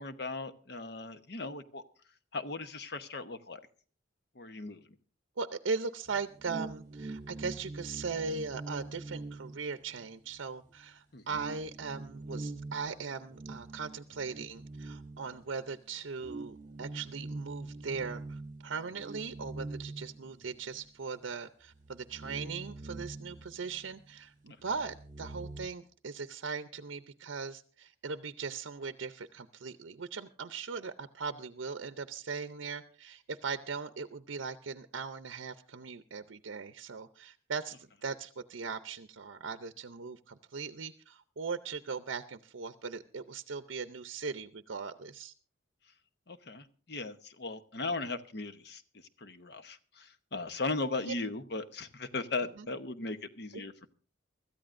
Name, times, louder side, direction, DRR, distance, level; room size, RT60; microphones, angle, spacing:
voice 1, 0.0-1.8 2.3-3.6 4.3-4.8 11.1-11.4 46.3-48.8 49.2-53.9, left 3 dB, 55° left, 9 dB, 1.0 m, -38 dB
voice 2, 5.4-45.3 51.1-51.2 52.6-52.7, right 5 dB, 80° right, 10 dB, 0.6 m, -39 dB
sound 1, 6.1-10.4 10.7-10.8 11.3-15.7 16.2-20.9 21.2-21.3 21.7-24.2 24.5-25.7, right 2 dB, 40° right, 0.9 m, -44 dB
24.5 x 13.5 x 2.6 m, 0.40 s
head